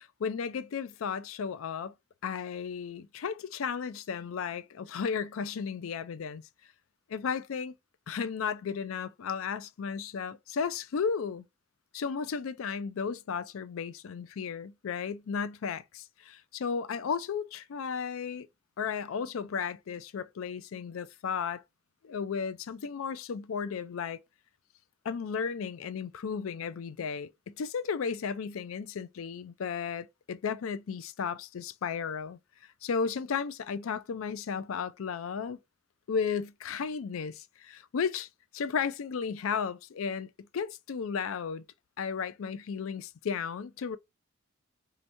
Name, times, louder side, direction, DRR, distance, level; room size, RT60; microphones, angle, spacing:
voice 1, 0.0-1.9 2.2-6.4 7.1-7.7 8.1-11.4 11.9-18.5 18.8-21.6 22.0-24.2 25.0-32.4 32.8-35.6 36.1-38.3 38.5-41.6 42.0-44.0, left 6 dB, 80° left, 0.4 m, -34 dB
2.8 x 2.6 x 4.4 m
head